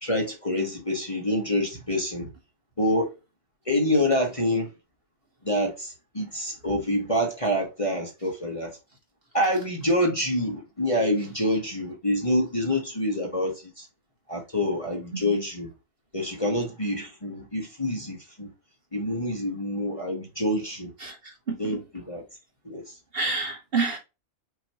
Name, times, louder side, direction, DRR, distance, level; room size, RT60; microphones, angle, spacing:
voice 1, 0.0-2.3 2.8-3.1 3.6-4.7 5.4-8.8 9.3-13.9 14.3-15.7 16.1-18.5 18.9-20.9 21.6-22.2 22.6-22.9, left 1 dB, 25° left, 1.3 m, -27 dB
voice 2, 15.1-15.4 21.0-21.6 23.1-24.0, right 4 dB, 45° right, 1.7 m, -29 dB
5.9 x 3.1 x 2.9 m
omnidirectional pair, 1.4 m